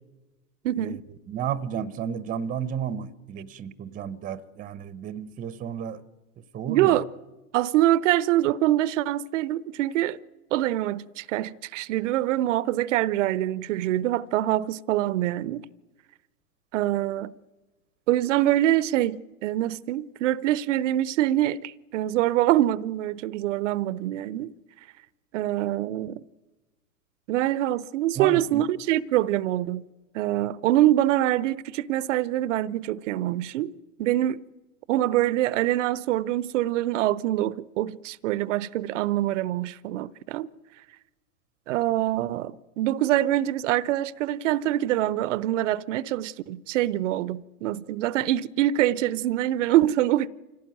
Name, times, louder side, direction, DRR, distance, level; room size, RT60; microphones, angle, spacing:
voice 1, 0.6-1.0 6.7-7.1 7.5-10.2 10.5-15.6 16.7-17.3 18.1-24.5 25.3-26.2 27.3-29.8 30.1-33.7 34.0-34.4 34.9-40.5 41.7-50.3, right 14 dB, 50° right, 0.7 m, -24 dB
voice 2, 1.3-6.0 6.5-7.0 28.1-28.7, right 8 dB, 15° right, 0.8 m, -32 dB
25.5 x 17.0 x 9.4 m
hypercardioid pair, 105°, 48 cm